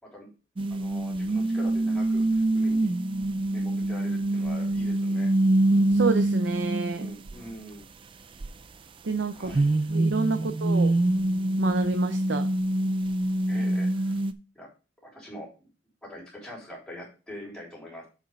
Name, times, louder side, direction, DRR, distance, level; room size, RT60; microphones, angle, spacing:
sound 1, 0.6-7.3 8.4-8.5 9.5-14.3, right 1 dB, 25° right, 0.3 m, -25 dB
voice 1, 0.7-2.9 3.5-5.3 6.9-7.9 9.3-9.7 10.3-10.6 13.5-14.2 14.5-14.7 15.0-15.5 16.0-18.1, equal, 5° left, -4 dB, 3.6 m, -44 dB
voice 2, 5.9-7.1 9.0-9.6 9.9-10.9 11.6-12.5, right 3 dB, 65° right, 7 dB, 0.6 m, -28 dB
7.3 x 5.0 x 5.3 m, 0.33 s
head